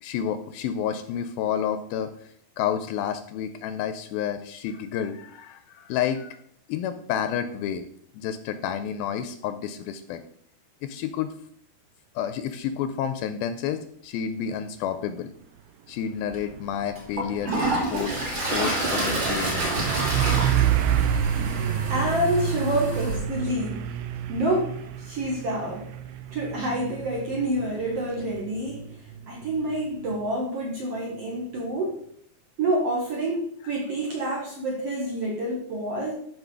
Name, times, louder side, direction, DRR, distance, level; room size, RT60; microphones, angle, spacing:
voice 1, 0.0-2.1 2.6-6.4 6.7-7.8 8.1-10.2 10.8-11.3 12.2-15.3 15.9-17.6 17.9-19.9, left 9 dB, 85° left, 10 dB, 2.3 m, -30 dB
Truck, 16.0-30.3, right 9 dB, 80° right, 2.3 m, -29 dB
Toilet flush, 16.3-16.4 17.0-23.2, right 1 dB, 30° right, 3.1 m, -29 dB
voice 2, 21.9-23.8 24.3-25.9 26.3-28.9 29.3-32.0 32.6-36.1, right 1 dB, 55° right, -1 dB, 1.8 m, -28 dB
13.0 x 5.5 x 4.8 m, 0.66 s
omnidirectional pair, 4.6 m